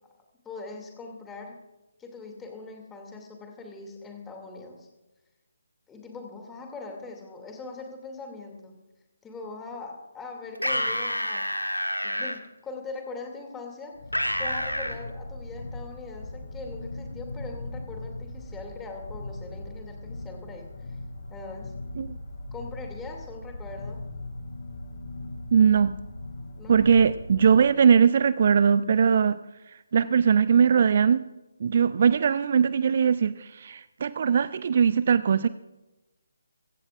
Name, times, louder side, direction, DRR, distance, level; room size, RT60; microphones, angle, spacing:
voice 1, 0.4-1.6 2.0-4.9 5.9-8.8 9.2-11.5 12.0-14.0 14.4-21.0 21.3-21.7 22.5-24.0 26.6-26.9, left 3 dB, 10° left, 2 dB, 2.6 m, -41 dB
sound 1, 10.6-12.4 14.1-15.0, equal, 90° left, 1.6 m, -28 dB
sound 2, 13.9-27.6, left 2 dB, 50° left, 2.8 m, -39 dB
voice 2, 25.5-26.0 26.7-29.4 29.9-31.2 31.6-35.5, right 7 dB, 40° right, 16 dB, 0.4 m, -20 dB
23.5 x 16.0 x 2.5 m, 1.1 s
figure-of-eight pair, 145°, 0 cm